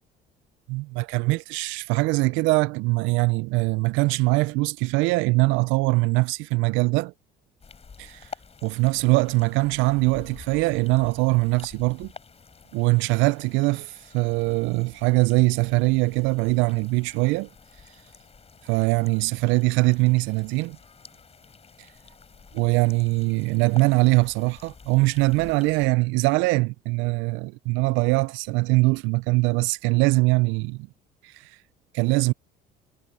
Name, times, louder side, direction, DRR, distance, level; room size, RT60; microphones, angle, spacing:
voice 1, 0.7-7.1 8.0-8.3 8.6-12.1 12.7-17.5 18.6-20.8 22.5-30.9 31.2-31.6 31.9-32.3, right 24 dB, 75° right, 0.5 m, -22 dB
sound 1, 7.6-25.9, left 5 dB, 30° left, 3.6 m, -48 dB
supercardioid pair, 75°, 20 cm